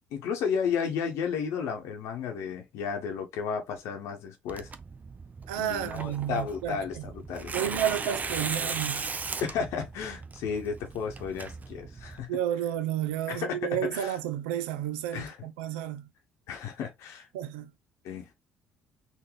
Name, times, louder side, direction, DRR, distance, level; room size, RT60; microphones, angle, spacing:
voice 1, 0.1-4.7 5.5-8.2 9.4-12.3 13.3-14.2 15.1-15.4 16.5-17.3 18.0-18.3, left 6 dB, 70° left, 0.9 m, -33 dB
Tearing, 4.5-12.2, right 4 dB, 30° right, 0.5 m, -37 dB
voice 2, 5.5-7.0 7.5-9.0 12.3-16.1 17.3-17.7, right 11 dB, 80° right, 0.4 m, -31 dB
3.7 x 2.6 x 3.1 m
hypercardioid pair, 55°, 5 cm